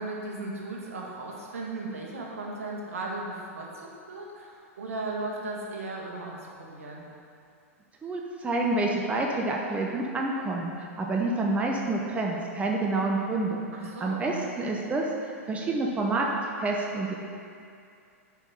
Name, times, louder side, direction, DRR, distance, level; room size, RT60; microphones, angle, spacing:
voice 1, 0.0-7.1 13.7-14.3, right 2 dB, 70° right, -2 dB, 1.5 m, -36 dB
voice 2, 8.0-13.6 14.0-16.3 16.6-17.1, right 2 dB, 15° right, -1 dB, 0.8 m, -28 dB
8.1 x 4.8 x 5.4 m, 2.5 s
figure-of-eight pair, 100°, 8 cm